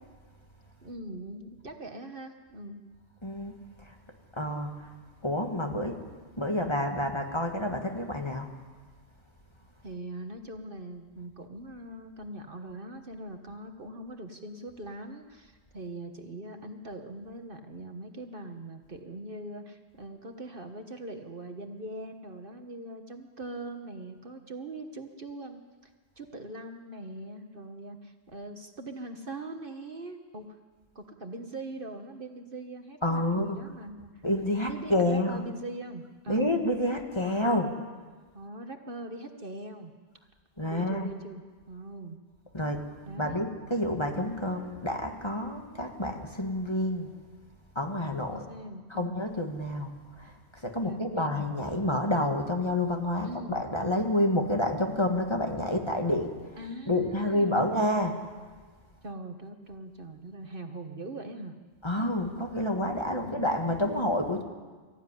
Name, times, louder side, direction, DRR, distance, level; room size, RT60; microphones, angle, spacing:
voice 1, 0.8-2.8 9.8-30.6 30.9-34.2 34.6-36.5 37.4-37.8 38.3-39.9 40.7-42.2 43.1-43.5 48.3-49.2 50.8-51.3 53.2-53.6 56.6-57.7 59.0-61.5 63.2-63.5, right 1 dB, 45° right, 6 dB, 1.5 m, -42 dB
voice 2, 3.2-3.5 3.8-4.0 4.3-4.9 5.2-6.1 6.4-8.5 33.0-33.6 34.2-35.4 36.3-37.7 40.6-41.1 42.5-42.9 43.2-47.1 47.8-48.4 48.9-58.4 61.8-64.4, left 1 dB, 20° left, 3 dB, 1.9 m, -29 dB
24.5 x 15.0 x 9.9 m, 1.4 s
omnidirectional pair, 1.2 m